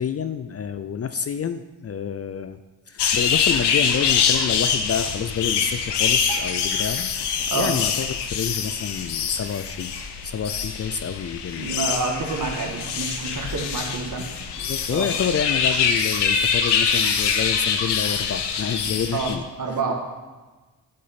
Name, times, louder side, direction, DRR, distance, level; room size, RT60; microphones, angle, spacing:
voice 1, 0.0-2.6 2.9-9.9 10.2-11.9 14.6-19.4, left 7 dB, 40° left, 11 dB, 0.4 m, -28 dB
sound 1, 3.0-19.3, left 6 dB, 90° left, 0.7 m, -24 dB
Piano, 6.3-9.4 9.9-10.1 10.4-10.5 11.2-11.3 11.8-11.9, right 7 dB, 80° right, 1.1 m, -45 dB
voice 2, 11.6-14.3 14.9-15.0 19.1-19.3 19.6-19.9, right 4 dB, 50° right, 1 dB, 1.7 m, -27 dB
8.6 x 3.9 x 5.7 m, 1.2 s
cardioid pair, 55°, 40 cm